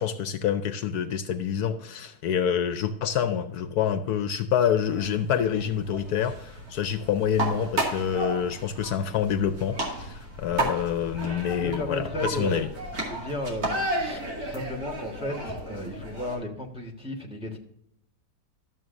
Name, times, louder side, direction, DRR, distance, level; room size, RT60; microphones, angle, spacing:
voice 1, 0.0-12.7, left 8 dB, 70° left, 10 dB, 1.1 m, -27 dB
sound 1, 4.9-16.4, right 1 dB, 60° right, 2.7 m, -33 dB
voice 2, 11.6-12.6 13.1-17.6, left 1 dB, 5° right, 1 dB, 1.2 m, -34 dB
12.5 x 7.3 x 2.6 m, 0.73 s
omnidirectional pair, 1.8 m